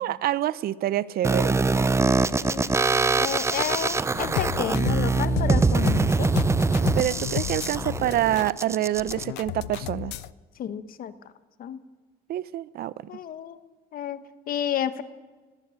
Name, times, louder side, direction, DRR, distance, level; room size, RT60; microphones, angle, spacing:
voice 1, 0.0-1.6 7.0-10.1 12.3-12.9, right 13 dB, 65° right, 19 dB, 0.7 m, -26 dB
sound 1, 1.2-9.2, right 3 dB, 15° right, 0.6 m, -24 dB
voice 2, 2.3-2.8 3.2-6.3 10.6-11.1 11.6-11.8 13.1-13.6 13.9-15.0, left 9 dB, 60° left, 13 dB, 1.3 m, -31 dB
sound 2, 4.1-10.3, left 16 dB, 90° left, 0.6 m, -32 dB
20.0 x 16.0 x 8.6 m, 1.4 s
cardioid pair, 110°, 17 cm